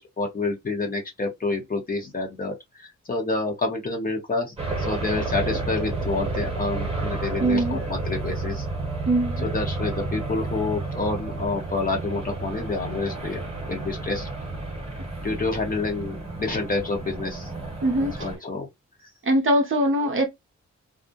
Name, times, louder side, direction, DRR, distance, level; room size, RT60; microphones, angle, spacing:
voice 1, 0.0-8.6 9.4-13.4 13.7-14.3 15.2-17.5 18.2-18.7 19.0-19.1, left 3 dB, 30° left, 0.8 m, -28 dB
sound 1, 4.6-18.4, right 3 dB, 20° right, 0.9 m, -31 dB
voice 2, 7.4-7.8 9.1-9.4 17.8-18.1 19.3-20.3, right 1 dB, 45° right, 0.6 m, -21 dB
2.4 x 2.0 x 2.6 m
wide cardioid pair, 145°, 30 cm